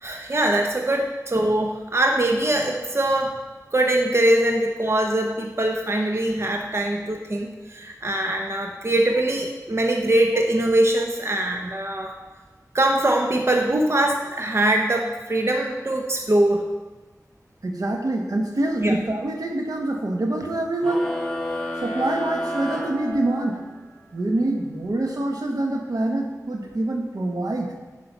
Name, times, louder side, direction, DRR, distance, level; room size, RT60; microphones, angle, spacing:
voice 1, 0.0-3.3 3.7-12.1 12.7-16.7 18.8-19.0, right 1 dB, 45° right, 2 dB, 0.9 m, -22 dB
voice 2, 17.6-21.1 21.8-23.6 24.1-27.7, right 1 dB, 75° right, 2 dB, 1.3 m, -25 dB
sound 1, 20.8-23.8, equal, 5° left, 1.6 m, -30 dB
9.5 x 5.8 x 5.6 m, 1.2 s
wide cardioid pair, 65°, 6 cm